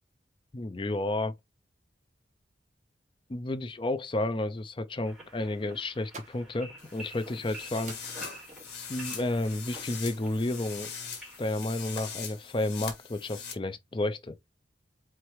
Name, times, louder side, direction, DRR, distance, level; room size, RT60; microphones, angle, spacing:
voice 1, 0.5-1.3 3.3-8.0 8.9-10.9 11.4-14.3, left 2 dB, 25° left, 0.5 m, -31 dB
sound 1, 5.0-11.5, right 1 dB, 5° right, 2.7 m, -49 dB
sound 2, 5.8-11.8, right 3 dB, 40° right, 1.3 m, -54 dB
sound 3, 6.8-13.5, left 6 dB, 60° left, 1.7 m, -42 dB
4.6 x 3.7 x 3.1 m
head